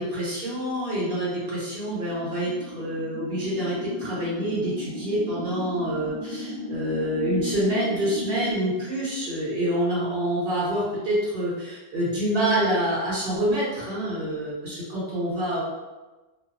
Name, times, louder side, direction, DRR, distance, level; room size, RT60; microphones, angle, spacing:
voice 1, 0.0-15.6, right 1 dB, 55° right, -8 dB, 1.2 m, -27 dB
sound 1, 1.8-8.5, left 2 dB, 60° left, 0.6 m, -35 dB
2.8 x 2.0 x 2.5 m, 1.2 s
omnidirectional pair, 1.1 m